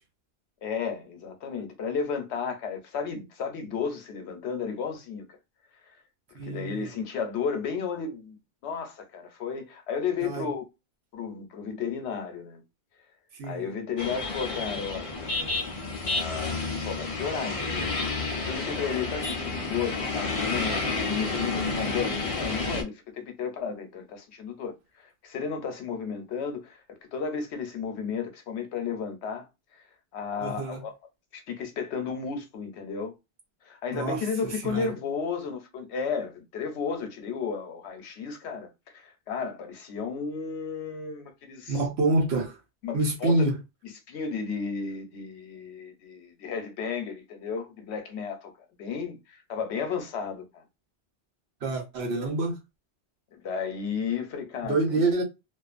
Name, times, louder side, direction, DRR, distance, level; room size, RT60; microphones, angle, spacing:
voice 1, 0.6-5.4 6.4-8.4 8.6-10.6 11.1-12.6 13.4-15.2 15.8-29.5 29.7-29.8 30.1-30.9 31.3-33.1 33.7-38.7 38.9-41.8 42.8-43.5 44.1-50.6 53.3-55.0, left 6 dB, 85° left, 1.0 m, -33 dB
voice 2, 6.3-6.8 10.2-10.5 13.4-13.7 30.4-30.8 33.9-34.9 41.7-42.6 42.9-43.6 51.6-52.6 54.6-55.2, right 2 dB, 75° right, 1.1 m, -27 dB
sound 1, 14.0-22.8, left 3 dB, 40° left, 0.6 m, -30 dB
2.5 x 2.3 x 2.4 m
omnidirectional pair, 1.1 m